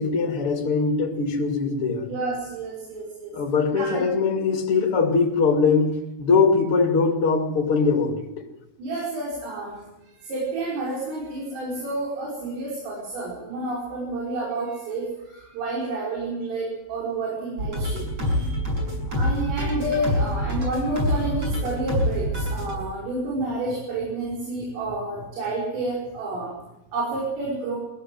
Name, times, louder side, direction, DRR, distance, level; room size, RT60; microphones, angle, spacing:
voice 1, 0.0-2.1 3.3-8.4, left 4 dB, 35° left, 2.4 m, -22 dB
voice 2, 2.1-3.3 3.8-4.1 8.8-9.9 10.1-18.6 19.0-26.5 26.9-27.8, right 2 dB, 85° right, 8.0 m, -30 dB
sound 1, 17.6-22.7, left 1 dB, 30° right, 7.4 m, -26 dB
23.0 x 17.0 x 7.9 m
omnidirectional pair, 5.7 m